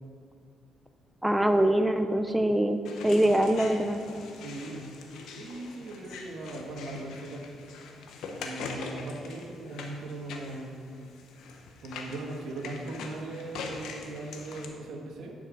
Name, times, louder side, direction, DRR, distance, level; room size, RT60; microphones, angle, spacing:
voice 1, 1.2-2.8 3.0-4.0, right 1 dB, 5° right, 7 dB, 0.5 m, -23 dB
sound 1, 2.8-14.7, left 4 dB, 80° left, 1.0 m, -43 dB
voice 2, 4.4-4.9 5.3-7.5 8.3-10.8 11.8-15.3, right 2 dB, 75° right, 1 dB, 1.5 m, -39 dB
10.0 x 5.6 x 5.2 m, 2.5 s
cardioid pair, 90°, 0 cm